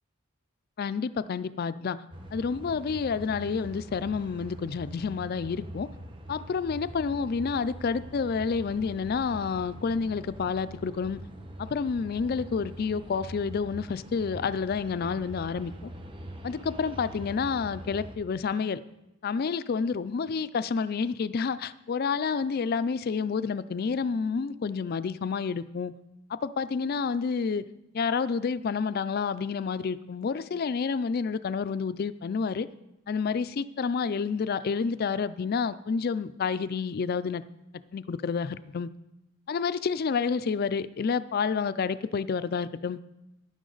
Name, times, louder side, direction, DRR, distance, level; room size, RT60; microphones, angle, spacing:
voice 1, 0.8-2.0 2.3-5.9 6.3-11.2 11.6-15.9 16.4-18.8 19.2-25.9 26.3-27.6 27.9-32.7 33.1-37.4 37.9-38.9 39.5-43.0, left 5 dB, 45° left, 15 dB, 0.3 m, -29 dB
sound 1, 2.1-18.2, right 1 dB, 25° right, 0.9 m, -43 dB
11.5 x 10.5 x 3.9 m, 0.92 s
head